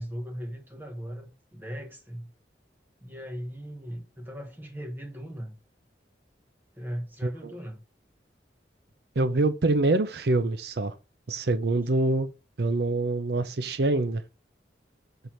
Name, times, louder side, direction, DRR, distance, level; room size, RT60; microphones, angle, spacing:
voice 1, 0.0-2.3 3.0-5.5 6.8-7.8, equal, 10° right, 1.3 m, -38 dB
voice 2, 7.2-7.5 9.2-10.9 11.3-12.3 12.6-14.2, right 2 dB, 60° right, 0.6 m, -25 dB
6.7 x 4.5 x 4.4 m
head